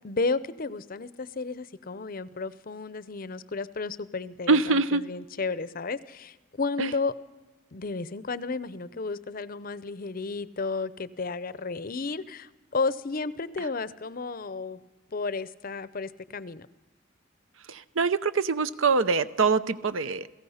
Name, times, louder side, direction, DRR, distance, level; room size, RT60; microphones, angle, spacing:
voice 1, 0.0-7.1 7.7-14.8 15.1-16.7, left 4 dB, 45° left, 16 dB, 0.6 m, -32 dB
voice 2, 4.5-5.1 6.8-6.9 13.6-13.7 17.7-20.3, right 4 dB, 70° right, 14 dB, 0.8 m, -24 dB
29.0 x 17.0 x 5.7 m, 1.2 s
head